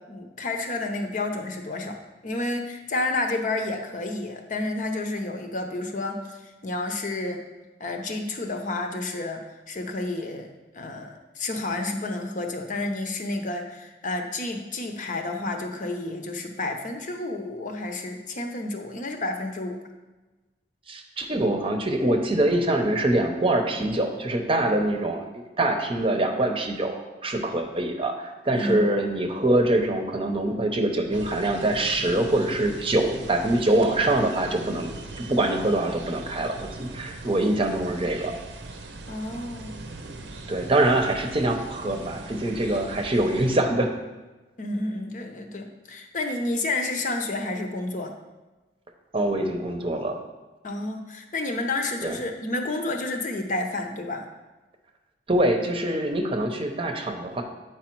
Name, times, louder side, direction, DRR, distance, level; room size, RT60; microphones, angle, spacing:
voice 1, 0.1-2.0 2.2-6.4 6.6-7.4 7.8-9.4 9.7-19.8 28.5-28.8 39.1-39.9 44.6-48.1 50.6-54.2, left 2 dB, 45° left, 4 dB, 0.8 m, -30 dB
voice 2, 20.9-25.2 25.6-34.9 35.3-38.4 40.5-43.9 49.1-50.2 52.0-52.2 55.3-57.4, right 1 dB, 30° right, 4 dB, 0.8 m, -24 dB
sound 1, 31.1-43.6, right 2 dB, 80° right, 0.8 m, -40 dB
8.4 x 4.8 x 4.6 m, 1.2 s
head